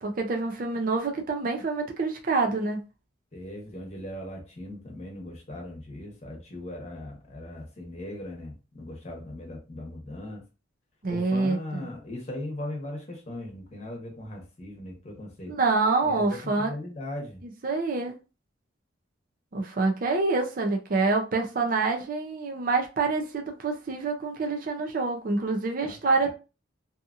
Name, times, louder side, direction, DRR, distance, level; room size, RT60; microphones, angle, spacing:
voice 1, 0.0-2.8 11.0-11.9 15.5-16.7 17.6-18.1 19.5-26.3, right 3 dB, 45° right, 0.5 m, -26 dB
voice 2, 3.3-10.4 11.1-15.6 16.0-17.4 25.8-26.3, left 1 dB, 35° left, 1.0 m, -39 dB
2.7 x 2.5 x 2.5 m
head